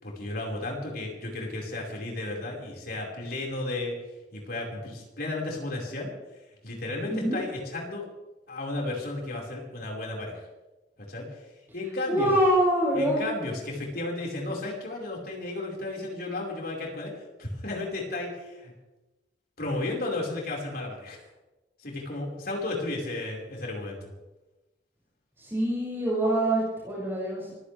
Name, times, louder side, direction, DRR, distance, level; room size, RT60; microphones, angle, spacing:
voice 1, 0.0-4.0 4.3-6.1 6.6-8.0 8.5-10.5 11.1-11.4 11.7-12.3 12.9-18.7 19.6-21.2 21.8-24.0, left 2 dB, 60° left, -2 dB, 5.1 m, -33 dB
voice 2, 7.1-7.4 12.1-13.2 25.4-27.5, right 1 dB, 15° right, -8 dB, 6.4 m, -25 dB
25.0 x 16.0 x 3.5 m, 1.1 s
head